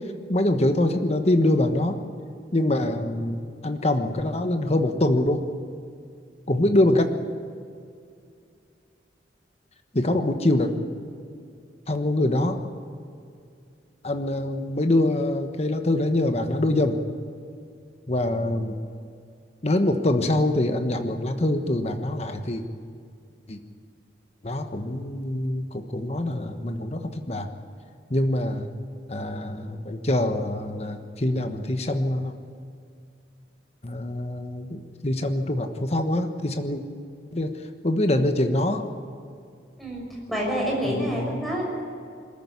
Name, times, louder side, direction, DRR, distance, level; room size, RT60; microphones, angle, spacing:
voice 1, 0.3-1.9 2.5-5.4 6.5-7.1 9.9-10.7 11.9-12.6 14.0-17.0 18.1-18.8 19.6-22.6 23.5-23.6 24.4-27.0 27.3-27.5 28.1-28.7 29.1-32.3 33.8-36.8 37.3-37.5 37.8-38.9 40.8-41.4, left 1 dB, 35° left, 6 dB, 1.3 m, -24 dB
voice 2, 39.8-41.6, equal, ahead, -2 dB, 6.1 m, -28 dB
22.0 x 14.0 x 9.5 m, 2.4 s
head